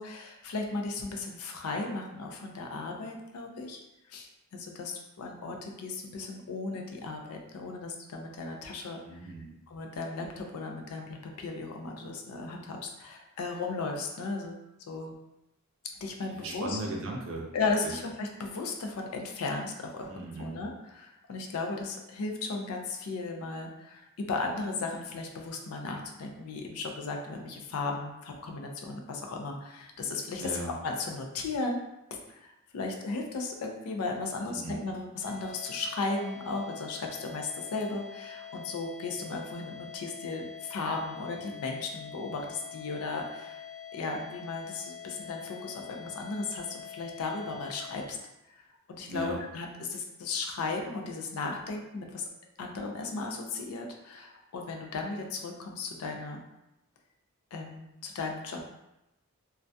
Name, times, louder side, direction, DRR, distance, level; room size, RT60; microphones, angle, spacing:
voice 1, 0.0-3.8 4.1-9.0 9.7-15.1 16.0-16.8 17.5-30.5 30.8-31.8 32.1-43.6 43.9-48.2 48.9-52.3 52.6-56.4 57.5-58.6, left 3 dB, 75° left, 2 dB, 0.4 m, -36 dB
voice 2, 9.0-9.6 16.3-17.5 17.8-17.9 20.1-20.6 30.4-30.8 34.4-34.9 49.1-49.4, right 2 dB, 65° right, 0 dB, 0.5 m, -37 dB
sound 1, 35.2-48.1, left 8 dB, 25° left, 0.5 m, -45 dB
2.3 x 2.1 x 2.5 m, 0.90 s
head